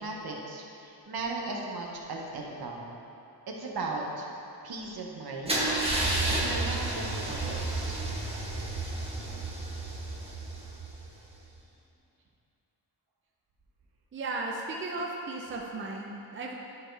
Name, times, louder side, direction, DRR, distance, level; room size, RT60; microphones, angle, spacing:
voice 1, 0.0-2.9 3.5-4.3 4.6-5.6 6.4-7.9, right 3 dB, 60° right, -1 dB, 1.0 m, -37 dB
Car / Engine starting / Idling, 5.5-11.3, right 2 dB, 15° right, 1.1 m, -31 dB
voice 2, 14.1-16.5, right 3 dB, 30° right, -1 dB, 0.6 m, -35 dB
10.5 x 4.5 x 3.3 m, 2.8 s
wide cardioid pair, 120°, 41 cm